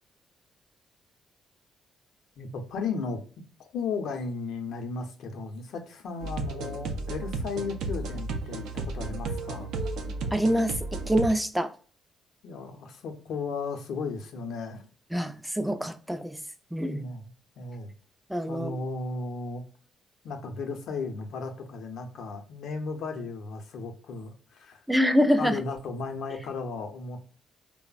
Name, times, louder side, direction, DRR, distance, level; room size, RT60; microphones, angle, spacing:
voice 1, 2.4-3.2 3.6-10.0 12.4-14.8 16.9-17.3 17.6-17.9 18.5-19.6 20.2-24.8 25.4-27.2, left 4 dB, 75° left, 0.5 m, -35 dB
sound 1, 6.2-11.4, right 3 dB, 85° right, 0.4 m, -33 dB
voice 2, 10.3-11.7 15.1-16.4 16.7-17.1 18.3-18.7 24.9-25.6, equal, 5° right, 0.3 m, -25 dB
3.2 x 2.0 x 2.3 m
cardioid pair, 90°, 0 cm